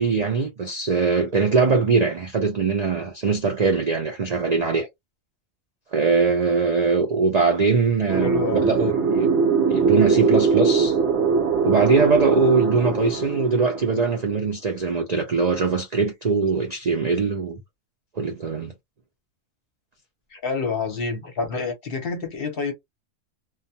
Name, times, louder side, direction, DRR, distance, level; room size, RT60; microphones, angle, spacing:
voice 1, 0.0-4.9 5.9-9.4 9.7-11.0 11.6-17.6 18.2-18.7, right 4 dB, 85° right, 0.3 m, -21 dB
sound 1, 8.1-14.3, right 5 dB, 60° right, 1.1 m, -21 dB
voice 2, 8.2-9.0 20.3-22.7, left 4 dB, 50° left, 0.8 m, -28 dB
2.3 x 2.2 x 2.7 m
omnidirectional pair, 1.4 m